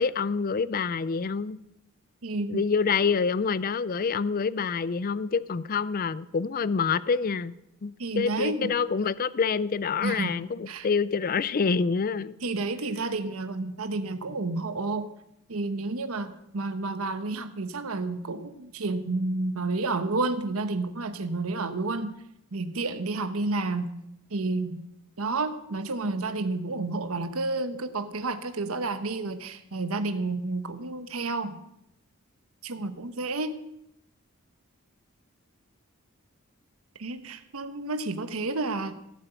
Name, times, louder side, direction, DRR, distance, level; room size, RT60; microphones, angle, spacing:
voice 1, 0.0-1.6 2.5-7.5 7.8-12.4, left 5 dB, 40° left, 18 dB, 0.4 m, -27 dB
voice 2, 2.2-2.6 8.0-8.7 10.0-10.3 10.7-10.9 12.4-15.1 15.5-22.1 22.5-23.9 24.3-24.8 25.2-31.6 32.6-33.6 37.0-39.0, right 3 dB, 85° right, 9 dB, 1.0 m, -30 dB
16.5 x 7.8 x 8.1 m, 0.81 s
head